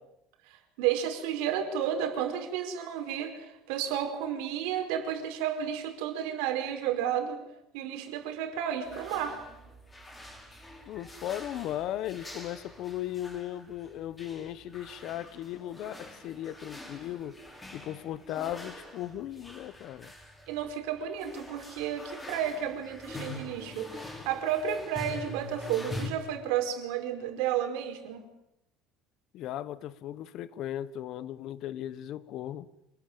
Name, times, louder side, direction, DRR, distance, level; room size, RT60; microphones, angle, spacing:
voice 1, 0.5-7.4 7.7-9.4 20.5-28.2, right 9 dB, 85° right, 5.0 m, -32 dB
sound 1, 8.8-26.1, left 2 dB, 10° left, 4.7 m, -45 dB
voice 2, 10.9-17.4 17.7-20.1 29.3-32.7, left 12 dB, 45° left, 1.0 m, -37 dB
26.5 x 20.0 x 8.9 m
cardioid pair, 180°, 0 cm